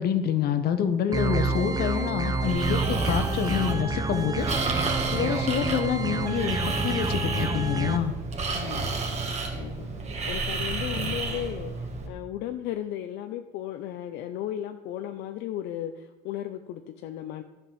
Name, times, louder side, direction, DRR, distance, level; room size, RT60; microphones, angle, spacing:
voice 1, 0.0-4.5 5.1-8.1, left 8 dB, 70° left, 9 dB, 1.2 m, -27 dB
sound 1, 1.1-8.0, right 3 dB, 20° right, 0.9 m, -29 dB
Breathing, 2.4-12.1, right 3 dB, 40° right, 1.9 m, -31 dB
voice 2, 8.5-8.9 9.5-9.9 10.3-11.7 12.1-17.4, left 11 dB, 85° left, 6 dB, 0.6 m, -35 dB
11.0 x 5.4 x 7.8 m, 1.1 s
cardioid pair, 110°, 17 cm